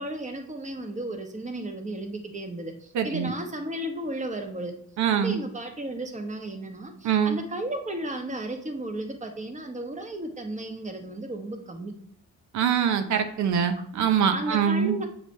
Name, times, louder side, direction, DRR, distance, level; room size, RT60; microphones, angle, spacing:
voice 1, 0.0-4.7 5.2-11.9 14.3-15.1, right 1 dB, 25° right, 5 dB, 1.2 m, -34 dB
voice 2, 2.9-3.3 5.0-5.4 7.0-7.4 12.5-15.0, right 7 dB, 70° right, 8 dB, 0.8 m, -24 dB
7.9 x 4.9 x 3.3 m, 0.66 s
cardioid pair, 90°, 30 cm